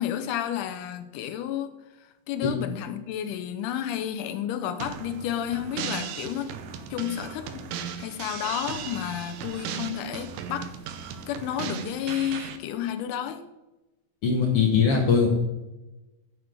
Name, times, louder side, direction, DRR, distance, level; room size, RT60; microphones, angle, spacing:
voice 1, 0.0-1.8 2.3-6.5 6.9-7.6 8.0-10.7 11.3-13.4, left 10 dB, 80° left, 8 dB, 2.1 m, -31 dB
sound 1, 4.8-12.6, right 7 dB, 85° right, 2.3 m, -37 dB
voice 2, 14.2-15.3, left 5 dB, 65° left, 0 dB, 1.6 m, -21 dB
11.0 x 6.2 x 3.6 m, 1.0 s
omnidirectional pair, 3.7 m